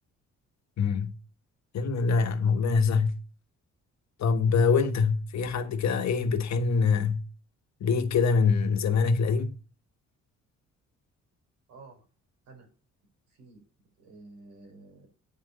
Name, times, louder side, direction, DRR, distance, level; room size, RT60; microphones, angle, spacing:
voice 1, 0.8-1.1 1.7-3.2 4.2-7.2 7.8-9.5, left 5 dB, 65° left, 1.4 m, -24 dB
voice 2, 11.7-12.0 12.5-12.7 13.3-13.6 14.0-15.1, right 3 dB, 90° right, 4.8 m, -51 dB
9.1 x 6.2 x 5.4 m
cardioid pair, 90°, 30 cm